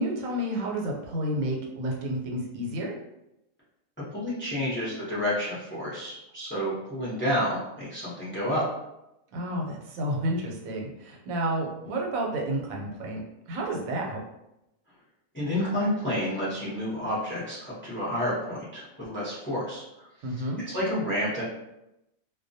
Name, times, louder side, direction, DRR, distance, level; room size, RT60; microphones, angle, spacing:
voice 1, 0.0-2.9 9.3-14.2 20.2-20.6, right 1 dB, 85° right, 0 dB, 1.0 m, -30 dB
voice 2, 4.1-8.6 15.3-19.8 20.7-21.4, equal, 15° left, -8 dB, 0.4 m, -29 dB
2.2 x 2.1 x 2.6 m, 0.88 s
omnidirectional pair, 1.4 m